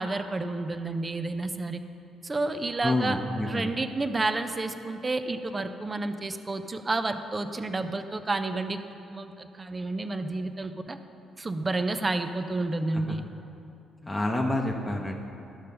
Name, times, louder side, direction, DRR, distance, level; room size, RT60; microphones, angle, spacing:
voice 1, 0.0-1.8 2.2-3.2 3.4-11.0 11.4-13.2, right 2 dB, 30° right, 8 dB, 0.6 m, -30 dB
voice 2, 2.8-3.7 13.1-13.2 14.0-15.1, left 1 dB, 20° left, 0 dB, 0.9 m, -28 dB
12.5 x 5.3 x 5.3 m, 2.7 s
hypercardioid pair, 45°, 0 cm